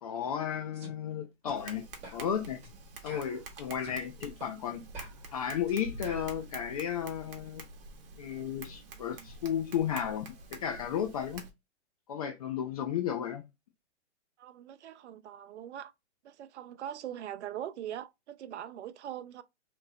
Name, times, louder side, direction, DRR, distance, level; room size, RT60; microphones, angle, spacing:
voice 1, 0.0-1.8 2.1-2.6 3.0-4.8 5.3-7.6 8.2-11.4 12.1-13.4, left 8 dB, 35° left, 0.4 m, -34 dB
sound 1, 0.7-0.9 1.5-1.6 2.0-2.2 2.6-2.8 3.1-4.0 4.4-4.5 4.9-6.3, right 2 dB, 20° right, 1.4 m, -48 dB
Tap, 1.5-11.5, right 2 dB, 50° right, 1.0 m, -47 dB
voice 2, 14.4-15.9 16.2-19.4, right 10 dB, 70° right, 0.5 m, -41 dB
2.9 x 2.7 x 2.6 m
hypercardioid pair, 140°, 35 cm